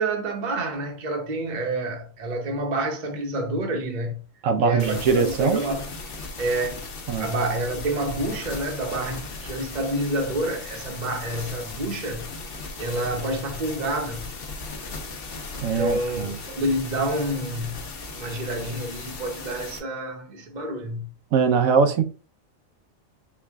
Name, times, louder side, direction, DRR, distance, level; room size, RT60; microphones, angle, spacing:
voice 1, 0.0-4.2 4.6-5.8 6.4-6.9 7.2-12.3 12.8-14.2 15.6-17.8 18.1-21.1, right 1 dB, 40° right, 0.8 m, -28 dB
voice 2, 4.4-5.6 7.1-7.3 15.6-16.4 21.3-22.0, right 5 dB, 85° right, 1.1 m, -21 dB
sound 1, 4.8-19.8, left 3 dB, 50° left, 0.9 m, -37 dB
4.7 x 2.3 x 3.5 m
omnidirectional pair, 1.4 m